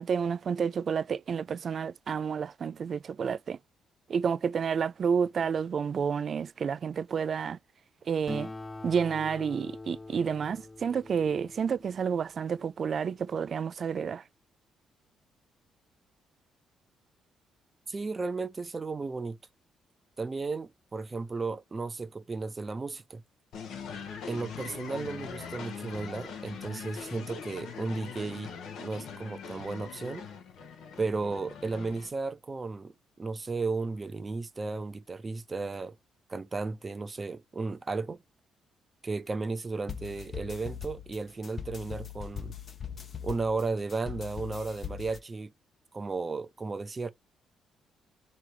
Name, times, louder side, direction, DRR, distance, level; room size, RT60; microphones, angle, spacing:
voice 1, 0.0-3.6 4.1-7.6 8.1-8.5 8.8-14.2, right 6 dB, 50° right, 0.3 m, -30 dB
Acoustic guitar, 8.3-13.1, left 2 dB, 15° left, 0.7 m, -44 dB
voice 2, 17.9-19.4 20.2-23.2 24.3-28.5 28.8-30.3 31.0-35.9 36.3-38.2 39.0-42.5 43.2-45.5 45.9-47.1, right 3 dB, 30° right, 0.8 m, -34 dB
sound 1, 23.5-32.1, left 6 dB, 80° left, 1.2 m, -42 dB
sound 2, 39.9-45.2, left 8 dB, 45° left, 0.9 m, -41 dB
3.4 x 3.2 x 4.6 m
cardioid pair, 90°, 0 cm